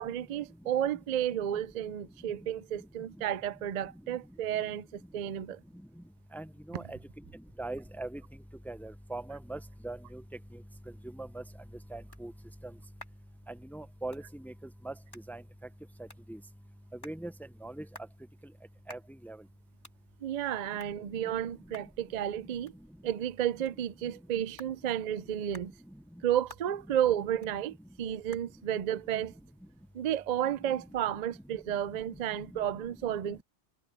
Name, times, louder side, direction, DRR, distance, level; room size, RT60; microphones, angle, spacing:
voice 1, 0.0-5.6 20.2-22.7 23.0-25.7 26.2-29.3 29.9-33.4, right 10 dB, 50° right, 0.5 m, -32 dB
voice 2, 6.3-7.0 7.6-8.2 8.7-10.2 11.1-11.4 11.9-12.3 13.5-14.5 14.8-14.9 15.3-15.4 16.3-16.4 17.0-17.3 17.6-17.8 18.9-19.4, right 2 dB, 5° left, 0.3 m, -40 dB
sound 1, 15.0-30.5, left 1 dB, 20° left, 3.1 m, -58 dB
omnidirectional pair, 1.1 m